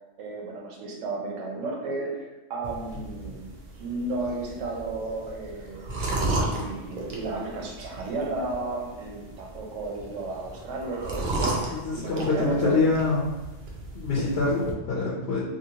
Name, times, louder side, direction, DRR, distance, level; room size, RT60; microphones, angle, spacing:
voice 1, 0.2-3.5 3.8-6.0 6.3-12.8, right 3 dB, 75° right, -1 dB, 1.0 m, -33 dB
sound 1, 2.6-14.7, right 2 dB, 55° right, 0.6 m, -34 dB
voice 2, 11.7-13.3 13.9-15.4, left 3 dB, 60° left, -5 dB, 0.8 m, -25 dB
2.7 x 2.7 x 2.8 m, 1.1 s
omnidirectional pair, 1.3 m